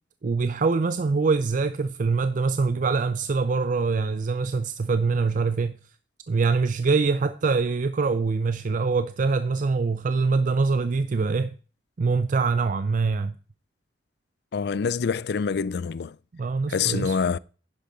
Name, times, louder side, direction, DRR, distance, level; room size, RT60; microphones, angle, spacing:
voice 1, 0.2-5.8 6.3-11.5 12.0-13.4 16.3-17.2, right 4 dB, 45° right, 0.4 m, -24 dB
voice 2, 14.5-16.2 16.7-17.4, left 6 dB, 65° left, 0.4 m, -26 dB
10.5 x 10.0 x 3.9 m
head